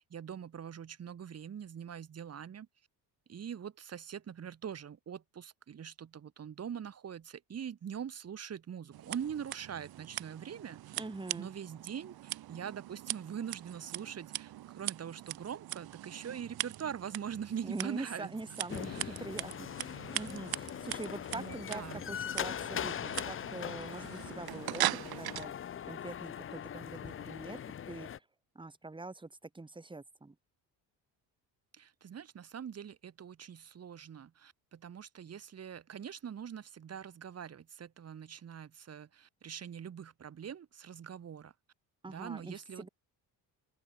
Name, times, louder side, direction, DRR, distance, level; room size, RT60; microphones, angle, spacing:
voice 1, 0.0-2.7 3.3-11.0 11.3-18.3 18.8-19.3 21.3-22.0 31.7-41.5 42.1-42.9, right 8 dB, 35° right, 2.9 m, -43 dB
Scissors, 8.9-25.5, right 14 dB, 65° right, 1.7 m, -41 dB
voice 2, 11.0-11.5 17.6-25.5 25.8-28.2 28.5-30.3 42.0-42.9, right 3 dB, 10° right, 4.3 m, -44 dB
sound 1, 18.7-28.2, left 9 dB, 30° left, 0.7 m, -41 dB
open air
cardioid pair, 140°, 41 cm